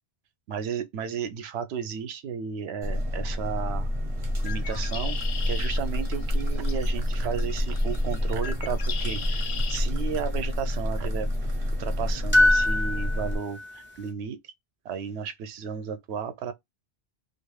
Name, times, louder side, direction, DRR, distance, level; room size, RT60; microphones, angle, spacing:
voice 1, 0.5-3.9 4.4-5.2 5.5-11.3 11.8-14.4 14.8-16.5, right 7 dB, 75° right, 0.8 m, -33 dB
sound 1, 2.8-13.4, left 1 dB, 40° right, 0.7 m, -28 dB
Bird, 4.3-9.8, left 7 dB, 60° left, 0.6 m, -39 dB
sound 2, 9.0-9.1 12.3-13.8, left 1 dB, 15° left, 0.4 m, -23 dB
2.5 x 2.3 x 3.1 m
omnidirectional pair, 1.1 m